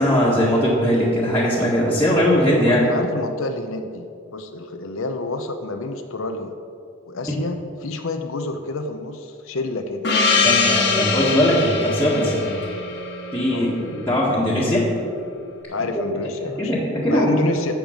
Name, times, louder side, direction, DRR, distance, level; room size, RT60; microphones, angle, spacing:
voice 1, 0.0-2.8 7.3-7.4 10.4-12.5 13.3-14.9 16.6-17.4, equal, 10° left, -8 dB, 1.7 m, -20 dB
voice 2, 2.5-6.6 7.1-10.1 13.5-13.7 15.7-16.7 17.1-17.7, left 2 dB, 75° left, 6 dB, 0.7 m, -29 dB
Gong, 10.0-14.4, left 4 dB, 55° left, 1.4 m, -23 dB
12.0 x 7.7 x 5.2 m, 2.4 s
head